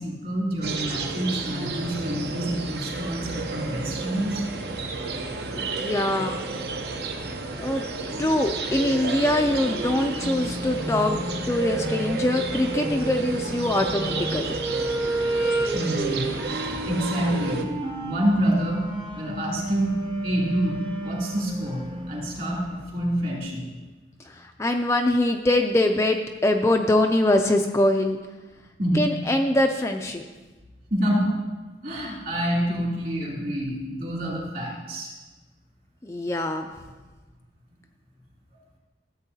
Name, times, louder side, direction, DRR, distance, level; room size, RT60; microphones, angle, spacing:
voice 1, 0.0-4.5 15.7-16.3 16.8-17.6 18.0-18.8 19.2-20.0 20.2-23.6 28.8-29.0 30.9-31.3 31.8-35.1, right 1 dB, 50° right, -4 dB, 2.7 m, -27 dB
sound 1, 0.6-17.6, right 3 dB, 65° right, 0.7 m, -31 dB
voice 2, 5.5-6.4 7.6-7.8 8.2-11.2 11.5-14.6 24.3-28.2 28.9-30.2 36.0-36.7, left 1 dB, 15° left, 3 dB, 0.3 m, -23 dB
sound 2, 8.1-22.9, right 1 dB, 25° right, 0.7 m, -32 dB
13.5 x 8.1 x 2.7 m, 1.2 s
head